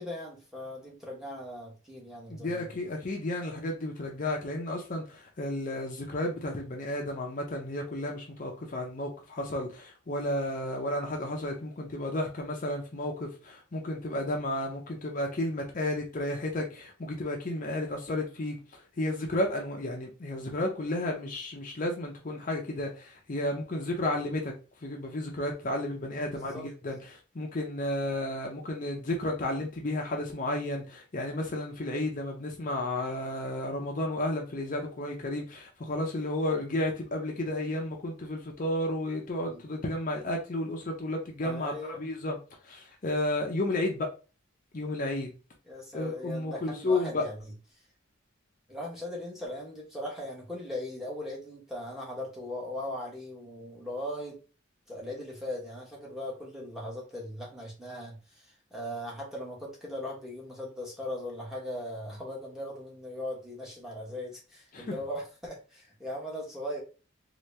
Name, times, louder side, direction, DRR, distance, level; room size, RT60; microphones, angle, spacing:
voice 1, 0.0-2.7 17.6-17.9 26.3-26.7 39.5-39.6 41.4-42.0 45.7-47.8 48.7-54.4 54.9-66.8, left 1 dB, ahead, -3 dB, 1.0 m, -39 dB
voice 2, 2.3-24.5 24.8-42.4 42.6-44.1 44.7-45.3 45.9-47.2 64.7-64.9, left 1 dB, 40° left, 1 dB, 0.6 m, -32 dB
2.8 x 2.7 x 3.2 m, 0.33 s
head